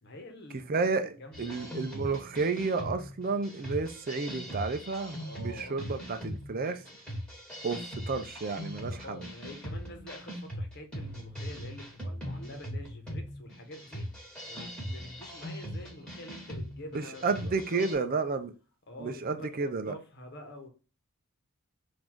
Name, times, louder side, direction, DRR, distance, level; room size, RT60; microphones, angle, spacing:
voice 1, 0.0-2.0 5.2-5.8 8.8-14.1 14.5-18.1 18.9-20.7, left 1 dB, 50° left, 1.1 m, -47 dB
voice 2, 0.7-6.8 7.6-9.3 16.9-18.5 19.0-19.9, right 4 dB, 45° right, 0.5 m, -31 dB
sound 1, 1.3-17.9, equal, 5° left, 1.9 m, -40 dB
4.1 x 2.6 x 4.4 m
head